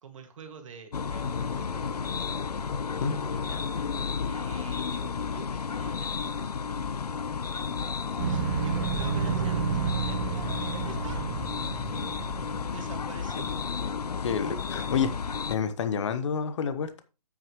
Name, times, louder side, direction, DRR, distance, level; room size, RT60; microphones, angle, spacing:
voice 1, 0.0-2.3 3.3-3.7 4.3-7.0 8.3-11.2 12.7-13.6, right 5 dB, 55° right, 5 dB, 1.9 m, -47 dB
sound 1, 0.9-15.6, left 5 dB, 80° left, 0.7 m, -32 dB
sound 2, 8.2-13.0, right 7 dB, 35° right, 1.5 m, -31 dB
voice 2, 14.2-15.1 15.5-17.0, left 6 dB, 50° left, 11 dB, 1.1 m, -28 dB
9.1 x 8.7 x 3.1 m, 0.29 s
figure-of-eight pair, 140°, 20 cm